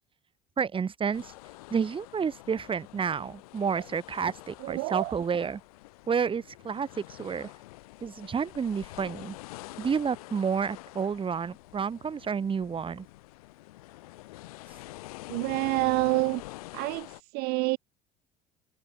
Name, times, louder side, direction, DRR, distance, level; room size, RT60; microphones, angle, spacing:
voice 1, 0.6-1.3 1.7-5.6 6.1-7.5 8.0-9.4 9.8-13.0, right 6 dB, 25° right, 1.3 m, -30 dB
sound 1, 1.1-17.2, left 19 dB, 75° left, 3.3 m, -46 dB
voice 2, 4.6-5.1 15.3-16.4 16.7-17.1 17.3-17.8, right 27 dB, 55° right, 0.4 m, -27 dB
hypercardioid pair, 70°, 19 cm